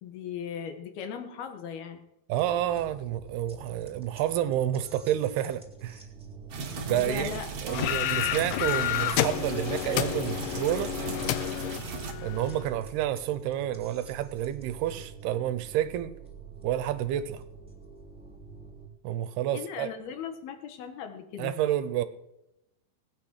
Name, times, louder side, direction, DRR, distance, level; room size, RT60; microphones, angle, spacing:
voice 1, 0.0-2.1 6.9-8.0 19.5-21.5, left 7 dB, 70° left, 7 dB, 3.2 m, -38 dB
sound 1, 2.3-18.9, right 7 dB, ahead, 2.1 m, -46 dB
voice 2, 2.3-6.0 6.8-7.3 7.6-10.9 12.2-16.2 16.6-17.4 19.0-19.9 21.4-22.0, right 12 dB, 80° right, 13 dB, 2.8 m, -29 dB
sound 2, 6.5-12.1, right 4 dB, 50° right, 2.4 m, -38 dB
sound 3, 7.7-12.7, left 13 dB, 85° left, 1.8 m, -30 dB
19.0 x 9.3 x 6.5 m, 0.87 s
omnidirectional pair, 4.7 m